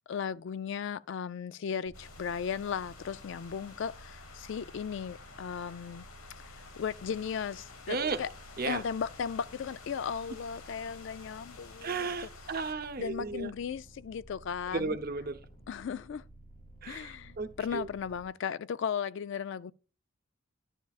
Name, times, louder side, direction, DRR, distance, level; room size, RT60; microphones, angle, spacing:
voice 1, 0.1-6.1 6.4-8.3 8.7-12.3 13.0-15.0 15.7-16.2 16.8-19.7, left 7 dB, 60° left, 0.3 m, -36 dB
sound 1, 1.8-18.3, right 1 dB, 40° left, 3.9 m, -54 dB
sound 2, 1.9-12.7, left 4 dB, 85° left, 1.1 m, -52 dB
voice 2, 7.9-8.2 8.6-8.8 11.8-13.5 14.7-15.4 16.8-17.9, right 4 dB, 45° right, 0.7 m, -34 dB
11.0 x 9.8 x 2.4 m
head